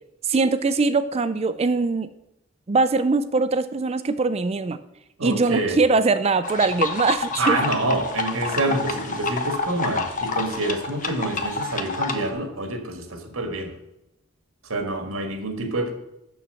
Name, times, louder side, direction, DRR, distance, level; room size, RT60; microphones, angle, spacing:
voice 1, 0.2-2.1 2.7-4.8 5.2-7.6, right 3 dB, 30° right, 12 dB, 0.4 m, -22 dB
voice 2, 5.2-5.8 7.4-13.7 14.7-15.9, right 2 dB, 80° right, 5 dB, 1.8 m, -27 dB
sound 1, 6.4-12.3, left 3 dB, 40° left, 1.0 m, -28 dB
7.0 x 6.3 x 6.9 m, 0.86 s
head